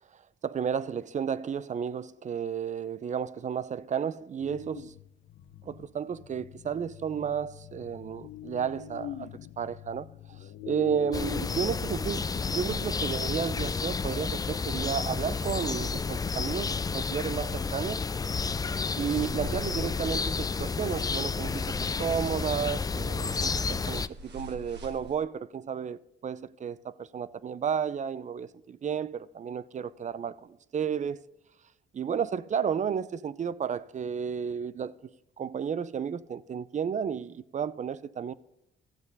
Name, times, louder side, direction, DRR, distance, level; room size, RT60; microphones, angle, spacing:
voice 1, 0.4-4.9 5.6-9.3 9.6-18.0 19.0-31.2 31.9-34.9 35.4-38.3, right 7 dB, 40° right, 0.5 m, -32 dB
sound 1, 4.4-13.1, left 9 dB, 70° left, 0.8 m, -44 dB
sound 2, 11.1-24.1, left 4 dB, 20° left, 0.3 m, -31 dB
sound 3, 18.2-25.2, right 2 dB, 60° right, 1.5 m, -47 dB
13.0 x 7.7 x 4.0 m
cardioid pair, 90°, 20 cm